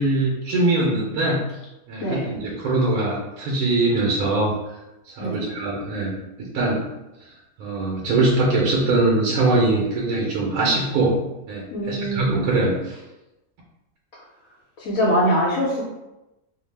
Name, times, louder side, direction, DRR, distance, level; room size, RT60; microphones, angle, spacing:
voice 1, 0.0-1.4 1.9-4.8 5.1-6.8 7.6-11.2 11.5-13.0, right 2 dB, 80° right, -3 dB, 1.1 m, -22 dB
voice 2, 11.7-12.5 14.8-15.9, equal, 70° left, -6 dB, 1.0 m, -23 dB
2.8 x 2.0 x 3.2 m, 0.97 s
omnidirectional pair, 1.5 m